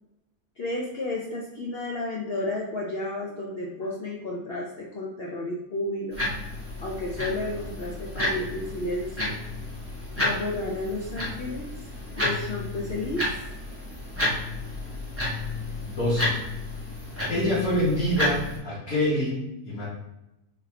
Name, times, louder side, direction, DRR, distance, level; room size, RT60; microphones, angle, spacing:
voice 1, 0.6-6.3 6.8-9.4 10.2-11.7 12.1-13.3, left 2 dB, 80° left, -2 dB, 0.5 m, -32 dB
sound 1, 6.1-18.6, left 1 dB, 10° right, 1.1 m, -31 dB
voice 2, 15.9-16.4 17.3-19.9, equal, 60° left, -10 dB, 1.7 m, -26 dB
3.7 x 3.6 x 2.8 m, 0.89 s
omnidirectional pair, 1.7 m